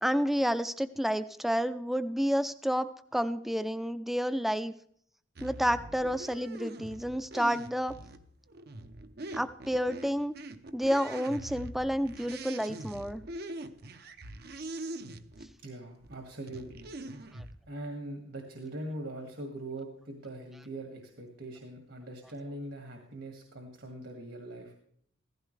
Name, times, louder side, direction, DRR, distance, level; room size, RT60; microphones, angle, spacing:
voice 1, 0.0-4.7 5.4-7.9 9.3-10.3 10.7-13.2 17.3-17.4, equal, ahead, 12 dB, 0.5 m, -30 dB
sound 1, 5.4-15.5 16.0-17.6, right 2 dB, 55° right, 0.7 m, -43 dB
voice 2, 15.6-16.9 17.7-24.8, right 1 dB, 70° right, 3 dB, 2.1 m, -42 dB
16.0 x 14.5 x 3.3 m, 0.64 s
head